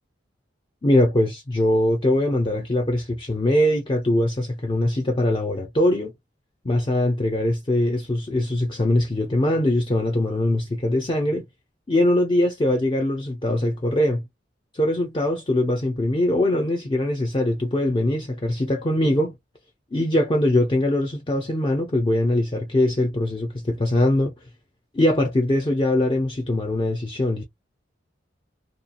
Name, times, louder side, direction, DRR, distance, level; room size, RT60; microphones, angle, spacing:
voice 1, 0.8-6.1 6.6-11.4 11.9-14.2 14.7-19.3 19.9-24.3 24.9-27.4, left 1 dB, 25° left, 0.5 m, -22 dB
2.7 x 2.2 x 2.4 m
head